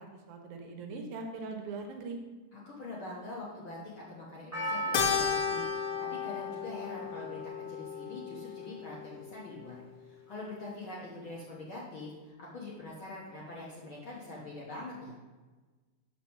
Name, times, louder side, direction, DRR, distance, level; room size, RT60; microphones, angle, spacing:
voice 1, 0.0-2.2, right 3 dB, 75° right, 3 dB, 2.2 m, -41 dB
voice 2, 2.5-7.4 7.7-15.2, left 2 dB, 55° left, -5 dB, 1.5 m, -44 dB
Percussion, 4.5-8.9 9.1-9.2, right 1 dB, 10° left, 1.0 m, -39 dB
Keyboard (musical), 4.9-9.5, left 8 dB, 85° left, 2.1 m, -35 dB
6.9 x 4.7 x 6.3 m, 1.3 s
omnidirectional pair, 3.6 m